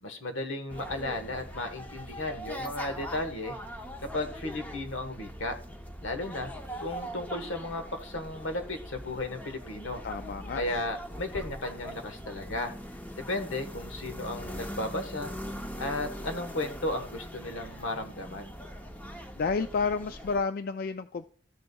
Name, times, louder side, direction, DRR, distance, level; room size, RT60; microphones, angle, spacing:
voice 1, 0.0-3.6 4.1-5.5 6.0-6.5 6.8-10.0 10.5-12.7 13.2-15.3 15.8-18.5, left 2 dB, 80° left, 1.3 m, -34 dB
sound 1, 0.7-20.4, equal, 10° left, 0.7 m, -41 dB
voice 2, 10.0-10.6 19.4-21.3, left 4 dB, 50° left, 0.3 m, -30 dB
14.0 x 6.8 x 2.3 m
head